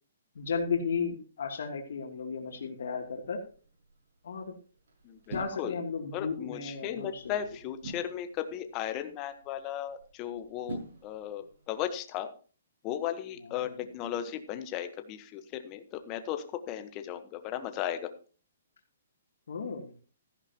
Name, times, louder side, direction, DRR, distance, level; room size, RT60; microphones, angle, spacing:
voice 1, 0.4-3.4 4.2-4.5 5.3-7.2 19.5-19.9, left 5 dB, 70° left, 1 dB, 2.8 m, -34 dB
sound 1, 2.5-11.7, right 2 dB, 75° right, 6.4 m, -48 dB
voice 2, 5.0-5.8 6.1-12.3 12.8-18.0, left 10 dB, 20° left, 9 dB, 1.1 m, -36 dB
14.5 x 11.0 x 2.9 m, 0.38 s
hypercardioid pair, 170°, 0 cm